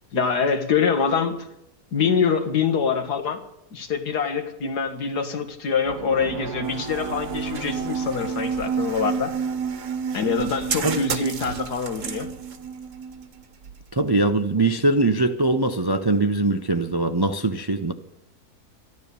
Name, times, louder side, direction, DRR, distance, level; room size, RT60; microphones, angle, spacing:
voice 1, 0.1-1.5 1.9-3.4 3.7-9.3 10.1-12.3, left 6 dB, 80° left, 2.1 m, -24 dB
sound 1, 5.8-13.4, right 6 dB, 75° right, 1.5 m, -31 dB
sound 2, 6.6-14.5, right 6 dB, 55° right, 1.4 m, -36 dB
voice 2, 13.9-17.9, right 2 dB, 30° right, 0.4 m, -22 dB
13.5 x 12.5 x 6.8 m
omnidirectional pair, 1.7 m